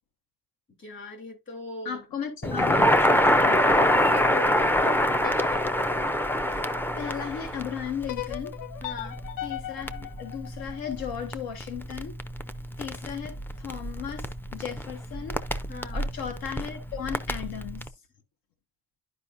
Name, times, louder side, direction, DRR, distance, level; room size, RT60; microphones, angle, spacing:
voice 1, 0.8-2.0 4.1-5.0 8.8-9.2 15.7-16.0, left 2 dB, 35° left, 3.2 m, -39 dB
voice 2, 1.8-4.0 6.5-6.7 7.0-8.5 9.4-12.2 12.8-15.4 15.9-17.9, left 8 dB, 80° left, 1.4 m, -36 dB
Crackle, 2.4-17.9, equal, 5° left, 0.4 m, -26 dB
sound 1, 5.2-7.4 8.1-11.2, left 13 dB, 65° left, 0.6 m, -39 dB
11.0 x 5.1 x 2.5 m
cardioid pair, 160°, 36 cm